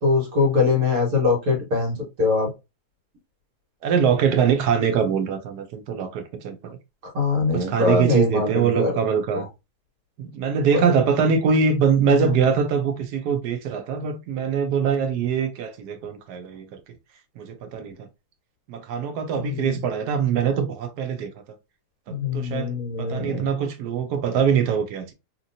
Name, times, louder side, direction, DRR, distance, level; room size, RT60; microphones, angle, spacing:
voice 1, 0.0-2.5 7.1-8.9 9.3-9.4 10.7-10.8 12.1-12.4 19.4-19.8 22.1-23.5, left 4 dB, 60° right, 1.8 m, -23 dB
voice 2, 3.8-6.8 7.5-9.5 10.2-16.8 17.4-18.1 18.7-21.3 22.3-25.1, right 6 dB, 90° right, 1.2 m, -23 dB
2.9 x 2.8 x 2.6 m
omnidirectional pair, 1.7 m